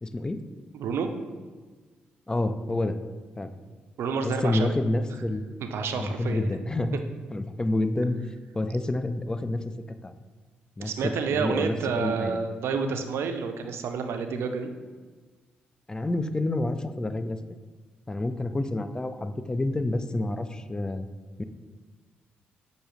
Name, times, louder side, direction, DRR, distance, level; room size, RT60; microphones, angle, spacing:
voice 1, 0.0-0.4 2.3-3.0 3.4-3.5 4.2-5.4 6.0-7.0 7.3-8.2 8.5-9.7 10.0-10.1 10.8-12.4 15.9-17.4 18.1-21.1 21.4-21.5, left 2 dB, 15° left, 10 dB, 0.3 m, -28 dB
voice 2, 0.7-1.1 4.0-4.7 5.6-6.6 10.8-14.7, right 5 dB, 70° right, 7 dB, 0.4 m, -29 dB
6.2 x 2.7 x 3.0 m, 1.4 s
hypercardioid pair, 45°, 4 cm